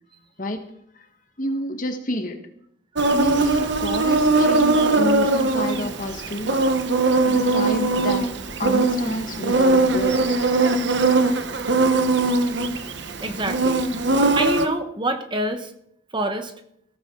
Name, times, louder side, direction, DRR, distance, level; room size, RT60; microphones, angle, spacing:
voice 1, 1.4-2.4 3.1-6.6 7.2-8.3 8.6-10.4, left 1 dB, 40° left, 6 dB, 1.6 m, -28 dB
Insect, 3.0-14.7, right 3 dB, 60° right, 1.2 m, -20 dB
voice 2, 13.2-13.8 14.3-15.7 16.1-16.5, right 2 dB, 25° right, 7 dB, 1.1 m, -26 dB
16.0 x 14.5 x 4.0 m, 0.71 s
head